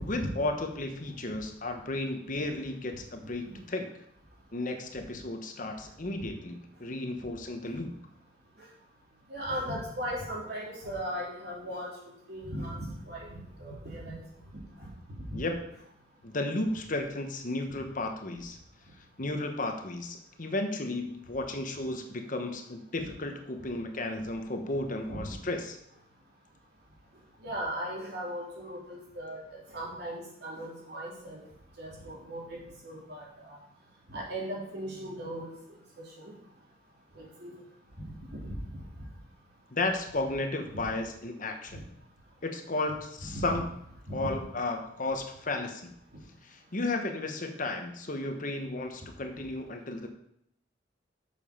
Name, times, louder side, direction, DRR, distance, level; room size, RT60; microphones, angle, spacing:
voice 1, 0.0-3.9 4.5-7.9 15.3-15.6 16.2-18.6 19.2-25.8 39.7-41.8 42.4-43.6 44.1-45.9 46.4-50.1, left 2 dB, 45° left, 5 dB, 1.1 m, -33 dB
voice 2, 9.3-11.9 12.3-14.2 14.5-15.2 25.1-25.4 27.4-31.4 31.8-33.6 34.1-35.5 36.2-36.3 37.1-37.5 38.0-38.8 40.7-40.8 41.7-41.8 43.2-43.5 44.1-44.4, equal, 60° right, -4 dB, 3.6 m, -38 dB
8.3 x 7.0 x 5.5 m, 0.75 s
head